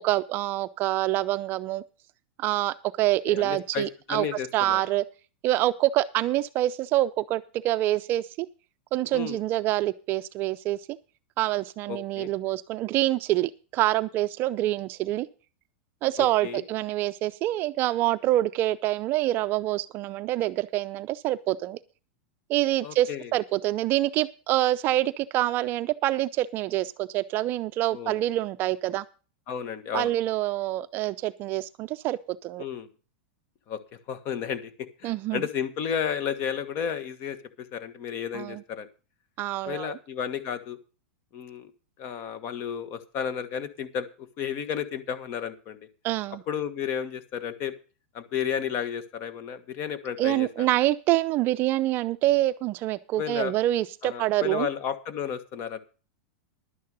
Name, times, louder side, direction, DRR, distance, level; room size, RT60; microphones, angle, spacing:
voice 1, 0.0-1.8 2.4-4.3 4.5-5.0 5.4-8.5 8.9-11.0 11.4-15.3 16.0-21.8 22.5-29.0 29.9-32.6 35.0-35.4 38.3-38.6 39.4-40.0 46.0-46.4 50.2-54.7, right 15 dB, 35° right, 13 dB, 0.5 m, -26 dB
voice 2, 3.3-4.8 9.1-9.4 11.9-12.3 16.2-16.6 22.8-23.3 27.9-28.2 29.5-30.1 32.6-32.9 33.7-33.8 34.1-38.9 39.6-40.8 41.3-41.7 42.0-45.8 46.5-47.7 48.1-50.7 53.2-53.5 54.0-55.8, left 8 dB, 40° left, 12 dB, 1.5 m, -32 dB
11.5 x 9.4 x 5.4 m, 0.35 s
supercardioid pair, 150°, 6 cm